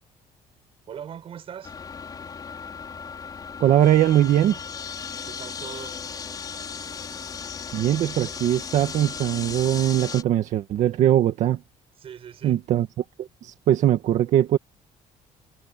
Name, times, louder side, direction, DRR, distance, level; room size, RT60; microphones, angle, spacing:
voice 1, 0.9-1.7 5.2-6.0 12.0-12.6, right 8 dB, 45° right, 5.3 m, -40 dB
sound 1, 1.6-10.2, left 6 dB, 30° left, 4.9 m, -36 dB
voice 2, 3.6-4.6 7.7-11.6 12.4-12.9 13.2-14.6, right 12 dB, 60° right, 1.8 m, -21 dB
cardioid pair, 150°, 14 cm